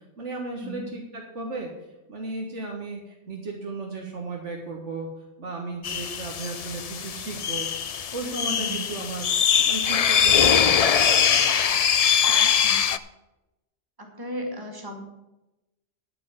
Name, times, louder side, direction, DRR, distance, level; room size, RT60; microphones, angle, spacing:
voice 1, 0.2-1.7 2.1-5.1 5.4-7.7 8.1-9.3 9.6-11.5, right 3 dB, 85° right, 0 dB, 1.9 m, -35 dB
sound 1, 5.8-13.0, left 8 dB, 55° left, 0.4 m, -22 dB
voice 2, 12.4-12.9 14.0-15.0, equal, 20° right, 2 dB, 2.0 m, -36 dB
13.0 x 4.5 x 8.6 m, 0.98 s
omnidirectional pair, 1.2 m